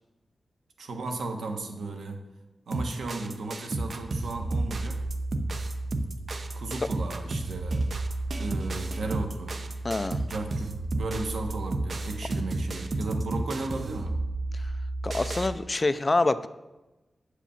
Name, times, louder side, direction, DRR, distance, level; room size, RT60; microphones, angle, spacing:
voice 1, 0.8-2.2 2.7-5.0 6.5-7.9 8.3-9.6 10.2-14.2, right 3 dB, 90° right, 4 dB, 1.2 m, -35 dB
sound 1, 2.7-15.5, right 2 dB, 45° right, 0.7 m, -31 dB
voice 2, 9.8-10.2 14.5-14.7 15.0-16.5, left 2 dB, 25° left, 13 dB, 0.3 m, -26 dB
8.9 x 4.9 x 7.0 m, 1.1 s
wide cardioid pair, 165°, 0 cm